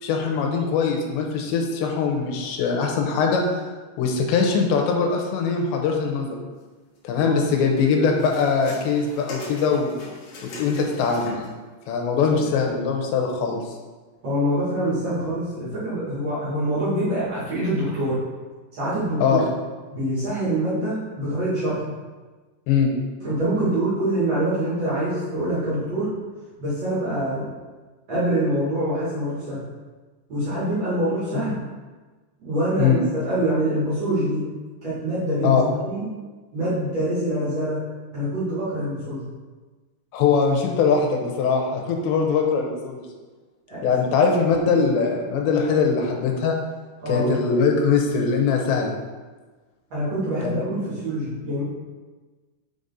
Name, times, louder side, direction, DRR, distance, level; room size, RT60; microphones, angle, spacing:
voice 1, 0.0-3.7 4.0-6.4 7.0-9.9 10.4-11.4 11.9-13.6 19.2-19.5 22.7-22.9 31.3-31.6 32.8-33.0 35.4-35.6 40.1-43.1 43.8-46.5 47.1-49.0 50.4-50.6, left 5 dB, 85° left, 1 dB, 3.0 m, -22 dB
voice 2, 7.2-7.5 14.2-18.2 18.8-19.4 19.9-21.8 23.2-26.1 26.6-27.4 28.1-29.6 30.3-31.5 32.4-34.5 34.8-36.1 36.5-37.8 38.1-39.3 43.7-43.8 47.0-47.3 49.9-51.6, right 1 dB, 40° right, -11 dB, 3.1 m, -25 dB
sound 1, 7.8-11.6 12.4-12.5, left 2 dB, 60° left, 2.2 m, -41 dB
6.6 x 5.2 x 4.1 m, 1.3 s
omnidirectional pair, 5.1 m